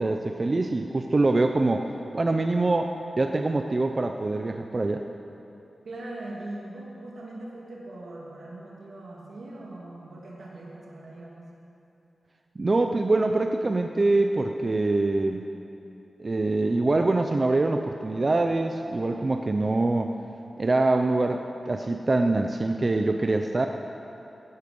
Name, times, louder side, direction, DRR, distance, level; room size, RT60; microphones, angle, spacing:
voice 1, 0.0-1.9 2.1-5.0 12.6-15.5 16.2-20.1 20.6-23.7, right 2 dB, 30° right, 5 dB, 0.5 m, -24 dB
voice 2, 5.8-11.5, right 2 dB, 75° right, -4 dB, 2.8 m, -40 dB
16.5 x 9.7 x 5.4 m, 2.9 s
wide cardioid pair, 130°, 0 cm